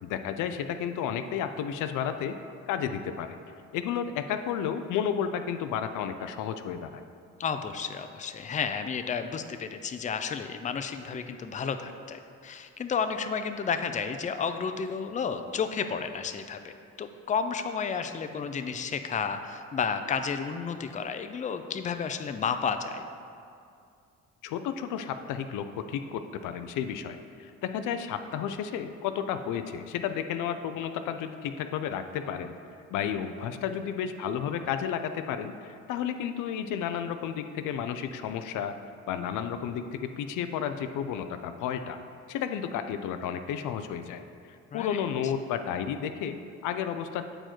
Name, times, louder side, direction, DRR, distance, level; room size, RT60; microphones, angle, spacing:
voice 1, 0.0-2.4 2.7-3.4 3.7-7.0 24.4-32.6 32.9-38.7 39.1-42.0 42.3-44.2 44.7-47.4, left 8 dB, 85° left, 9 dB, 0.5 m, -32 dB
voice 2, 7.4-16.7 17.0-23.0 44.7-45.0, left 6 dB, 25° left, 8 dB, 0.4 m, -32 dB
7.6 x 4.6 x 4.4 m, 2.4 s
cardioid pair, 90°, 30 cm